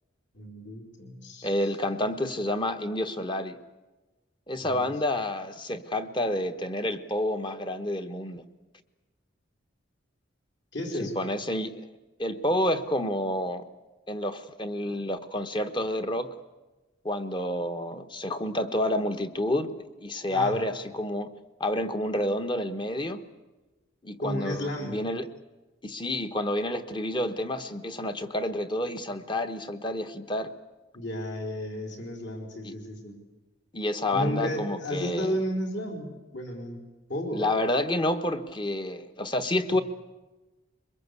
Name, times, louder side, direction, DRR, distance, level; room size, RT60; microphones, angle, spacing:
voice 1, 0.3-1.5 4.6-4.9 10.7-11.2 20.3-20.6 24.2-25.0 30.9-33.1 34.1-36.8 37.1-37.4, equal, 65° left, 2 dB, 4.0 m, -33 dB
voice 2, 1.4-3.6 4.5-8.4 11.0-11.9 12.2-13.6 14.1-16.3 17.0-21.3 21.6-23.2 24.0-25.3 25.8-30.5 32.6-32.7 33.7-35.4 37.3-39.8, left 1 dB, 25° left, 8 dB, 1.1 m, -29 dB
23.0 x 21.5 x 8.3 m, 1.1 s
head